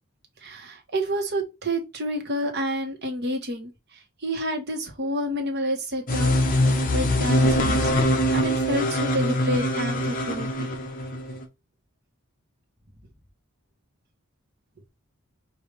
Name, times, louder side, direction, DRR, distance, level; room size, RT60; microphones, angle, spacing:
voice 1, 0.4-3.7 4.2-10.7, equal, 50° right, 1.2 m, -29 dB
sound 1, 6.1-11.4, left 1 dB, 40° left, 0.8 m, -23 dB
5.2 x 2.6 x 3.2 m
head